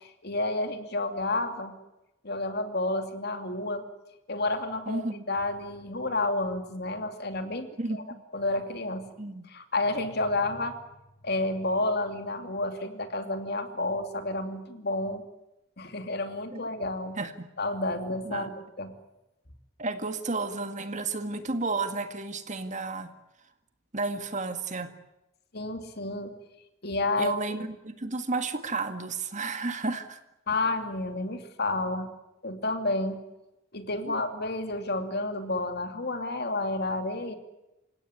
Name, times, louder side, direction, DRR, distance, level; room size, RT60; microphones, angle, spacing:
voice 1, 0.0-1.7 2.2-3.8 4.3-5.0 5.3-8.0 8.3-9.1 9.5-10.8 11.2-15.2 15.8-17.2 17.6-18.9 25.5-26.3 26.8-27.3 30.5-32.1 32.4-33.2 33.7-37.4, left 2 dB, 55° left, 7 dB, 2.7 m, -30 dB
voice 2, 4.9-5.2 7.8-8.2 9.2-9.5 16.5-16.6 17.2-17.5 18.2-18.5 19.8-23.1 23.9-24.9 27.2-30.2 34.0-34.1, right 3 dB, 40° right, 9 dB, 1.9 m, -32 dB
28.5 x 17.0 x 9.8 m, 0.95 s
head